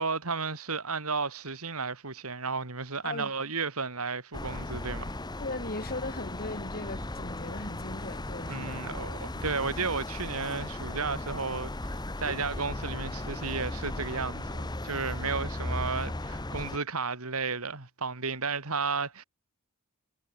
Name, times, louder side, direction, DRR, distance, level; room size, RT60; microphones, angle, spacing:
voice 1, 0.0-5.1 8.5-19.2, right 4 dB, 75° right, 2.7 m, -33 dB
sound 1, 4.3-16.8, left 1 dB, 20° left, 1.2 m, -36 dB
voice 2, 5.4-8.9, left 2 dB, 45° left, 6.2 m, -38 dB
head